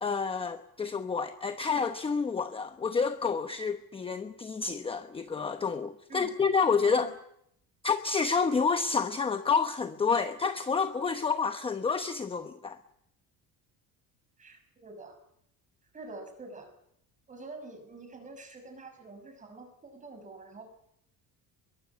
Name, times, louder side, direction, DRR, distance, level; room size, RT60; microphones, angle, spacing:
voice 1, 0.0-7.1 7.8-12.8, left 5 dB, 15° left, 8 dB, 0.9 m, -29 dB
voice 2, 14.4-15.2 15.9-16.7 17.3-20.7, right 3 dB, 20° right, 7 dB, 6.2 m, -46 dB
24.0 x 22.5 x 8.3 m, 0.74 s
cardioid pair, 175°, 35 cm